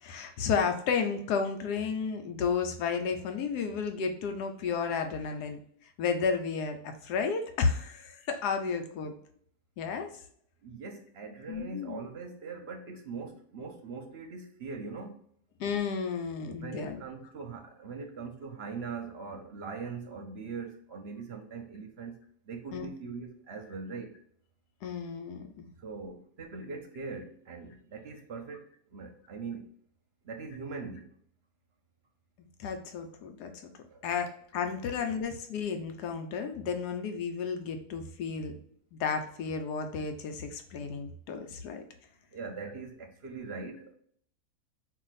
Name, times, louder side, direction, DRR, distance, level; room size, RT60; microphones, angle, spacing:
voice 1, 0.0-5.6 6.0-9.1 9.8-10.1 11.5-12.0 15.6-17.0 22.7-22.9 24.8-25.7 32.4-33.7 34.0-38.6 38.9-41.8, left 5 dB, 90° left, 5 dB, 1.3 m, -32 dB
voice 2, 10.6-15.2 16.5-22.2 22.5-24.1 25.8-29.7 30.3-31.1 33.9-34.0 42.3-43.9, right 4 dB, 55° right, 4 dB, 0.7 m, -41 dB
4.7 x 2.5 x 4.0 m, 0.63 s
omnidirectional pair, 1.7 m